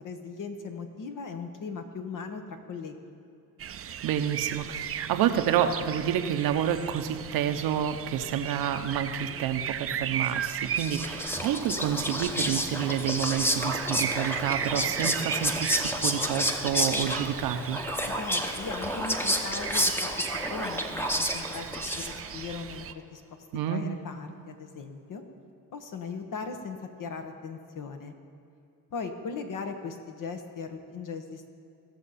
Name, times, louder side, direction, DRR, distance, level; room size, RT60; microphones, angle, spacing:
voice 1, 0.0-2.9 18.1-23.4 23.7-25.2 25.7-28.1 28.9-31.5, left 5 dB, 60° left, 6 dB, 1.3 m, -38 dB
sound 1, 3.6-22.9, right 9 dB, 40° right, 0.5 m, -37 dB
voice 2, 4.0-17.8 23.5-23.8, right 9 dB, 75° right, 7 dB, 0.8 m, -29 dB
Whispering, 10.5-22.4, equal, 5° left, 0.9 m, -30 dB
17.0 x 6.5 x 4.2 m, 2.6 s
supercardioid pair, 65°, 36 cm